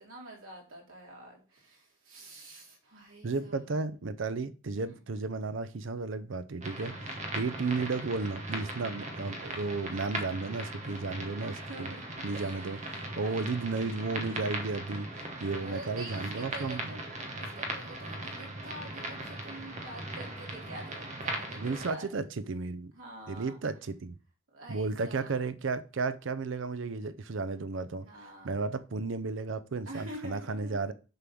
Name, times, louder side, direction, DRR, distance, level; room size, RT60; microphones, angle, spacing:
voice 1, 0.0-3.7 4.9-5.0 11.6-13.9 15.5-22.1 22.9-23.6 24.5-25.4 27.9-28.5 29.9-30.9, right 1 dB, 85° right, 3.0 m, -47 dB
voice 2, 3.2-11.9 12.2-16.9 21.6-22.9 23.3-24.1 24.7-28.1 28.4-30.9, right 3 dB, 65° right, 0.6 m, -33 dB
sound 1, 6.6-21.9, right 2 dB, 35° right, 1.3 m, -39 dB
6.6 x 3.8 x 6.0 m
head